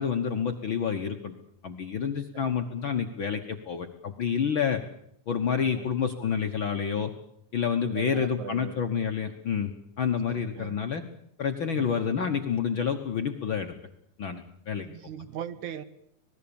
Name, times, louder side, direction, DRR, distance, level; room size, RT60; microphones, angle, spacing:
voice 1, 0.0-1.3 1.6-4.8 5.3-7.1 7.5-9.7 10.0-11.0 11.4-13.7 14.2-14.9, left 7 dB, 55° left, 5 dB, 1.4 m, -28 dB
voice 2, 7.8-8.8 10.3-10.8 11.7-12.0 14.8-15.9, right 9 dB, 70° right, 13 dB, 2.4 m, -39 dB
26.5 x 20.0 x 7.1 m, 0.72 s
omnidirectional pair, 3.7 m